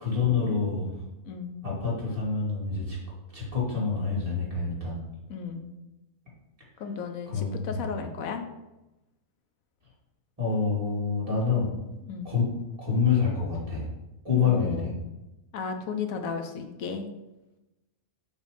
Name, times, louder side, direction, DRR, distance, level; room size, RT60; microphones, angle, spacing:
voice 1, 0.0-0.9 1.6-3.0 3.3-5.0 7.3-7.5 10.4-11.7 12.2-12.4 12.8-13.8 14.2-14.9, left 5 dB, 25° right, -6 dB, 2.6 m, -26 dB
voice 2, 1.2-1.5 5.3-5.7 6.8-8.4 12.0-12.3 14.4-15.0 15.5-17.1, left 5 dB, 75° left, 6 dB, 1.2 m, -34 dB
7.3 x 3.5 x 5.1 m, 0.98 s
omnidirectional pair, 1.5 m